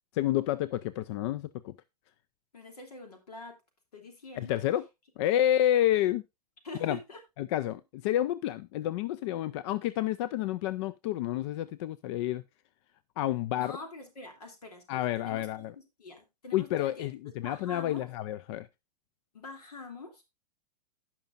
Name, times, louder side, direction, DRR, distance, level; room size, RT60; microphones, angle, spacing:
voice 1, 0.1-1.7 4.4-4.8 5.2-6.2 6.8-7.0 7.4-12.4 13.2-13.7 14.9-15.7 16.5-18.7, left 12 dB, 45° left, 0.5 m, -29 dB
voice 2, 2.5-3.6 3.9-4.6 6.6-7.2 13.6-15.7 16.0-17.1 17.4-18.1 19.3-20.2, left 3 dB, 75° left, 3.1 m, -45 dB
17.0 x 5.9 x 2.5 m
figure-of-eight pair, 105°, 20 cm